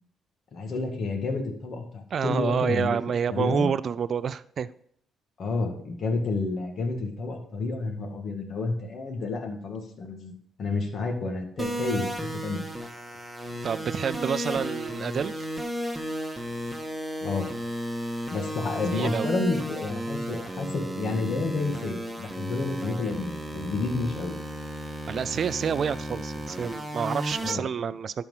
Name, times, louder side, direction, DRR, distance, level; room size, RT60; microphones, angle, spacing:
voice 1, 0.5-3.0 3.3-3.7 5.4-10.3 10.6-12.6 17.2-17.5 18.3-24.4 27.4-27.7, left 3 dB, 55° left, 3 dB, 1.8 m, -30 dB
voice 2, 2.1-4.7 13.6-15.5 18.9-19.3 25.1-28.2, right 7 dB, 50° right, 14 dB, 0.4 m, -28 dB
sound 1, 11.6-27.5, equal, 5° right, 1.6 m, -34 dB
12.0 x 4.5 x 5.6 m, 0.63 s
cardioid pair, 90°, 0 cm